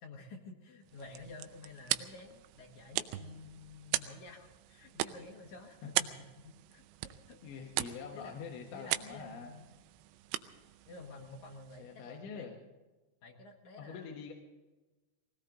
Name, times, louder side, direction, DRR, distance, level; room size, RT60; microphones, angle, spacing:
voice 1, 0.0-6.1 6.4-7.4 7.8-8.3 8.7-9.7 10.9-12.5 13.2-14.2, left 3 dB, 90° left, 0 dB, 1.6 m, -51 dB
sound 1, 0.8-12.1, right 15 dB, 80° right, 2.7 m, -40 dB
voice 2, 7.4-9.5 11.8-12.6 13.8-14.3, left 6 dB, 70° left, 0 dB, 3.5 m, -45 dB
21.5 x 17.5 x 3.8 m, 1.2 s
omnidirectional pair, 5.8 m